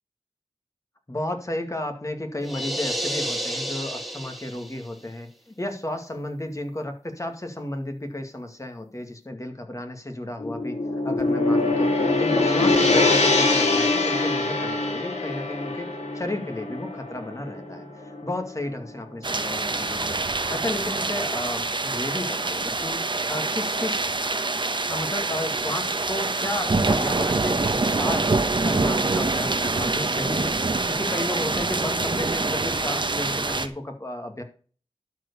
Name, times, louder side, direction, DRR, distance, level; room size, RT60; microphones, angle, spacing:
voice 1, 1.1-10.8 11.0-15.9 16.1-20.2 20.5-23.0 23.3-24.0 24.9-28.3 28.6-34.4, left 1 dB, 30° left, 5 dB, 2.2 m, -33 dB
sound 1, 2.4-4.9, equal, ahead, 2.0 m, -31 dB
Gong, 10.4-18.7, left 2 dB, 80° left, 2.3 m, -23 dB
sound 2, 19.2-33.7, right 3 dB, 45° right, 1.1 m, -25 dB
12.0 x 4.7 x 6.9 m, 0.42 s
cardioid pair, 45°, 11 cm